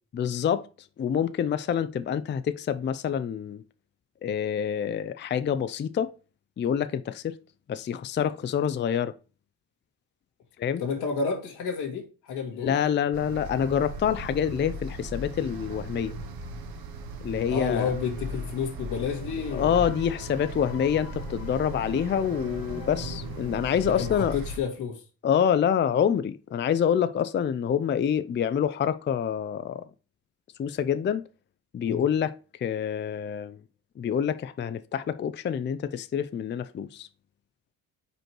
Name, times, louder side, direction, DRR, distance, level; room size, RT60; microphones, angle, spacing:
voice 1, 0.1-3.6 4.2-6.1 6.6-7.4 7.7-9.1 10.6-10.8 12.5-16.2 17.2-17.9 19.5-24.4 25.2-29.8 30.6-31.2 31.7-33.6 34.0-37.1, left 8 dB, 30° left, 0.4 m, -27 dB
voice 2, 10.8-12.7 17.5-19.8 24.0-25.0 31.9-32.0, left 5 dB, 85° left, 2.1 m, -30 dB
sound 1, 13.1-24.6, right 2 dB, 65° right, 1.1 m, -38 dB
sound 2, 17.3-18.6 18.9-24.0, left 9 dB, 70° left, 1.3 m, -45 dB
5.3 x 4.4 x 4.5 m
supercardioid pair, 75°, 38 cm